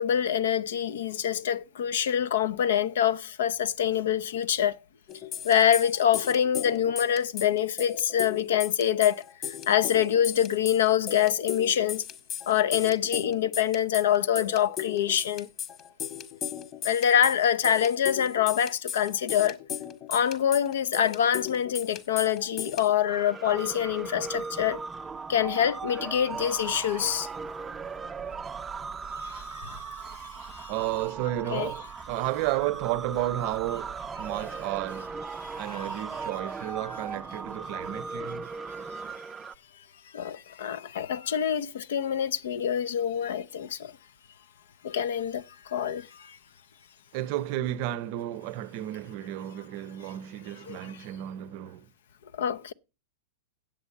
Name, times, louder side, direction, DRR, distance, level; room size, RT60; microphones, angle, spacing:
voice 1, 0.0-4.8 5.4-12.0 12.5-15.5 16.8-19.6 20.1-24.8 25.3-27.3 29.1-30.7 31.5-31.7 35.4-35.9 40.1-43.9 44.8-46.4 50.7-50.8 52.3-52.7, left 9 dB, 70° left, 0.7 m, -26 dB
sound 1, 5.1-22.9, left 9 dB, 35° left, 1.7 m, -37 dB
sound 2, 23.1-39.5, right 5 dB, 20° right, 0.5 m, -38 dB
voice 2, 30.7-35.1 35.6-38.5 47.1-51.9, right 14 dB, 50° right, 0.8 m, -32 dB
9.2 x 8.0 x 7.2 m
hypercardioid pair, 105°, 0 cm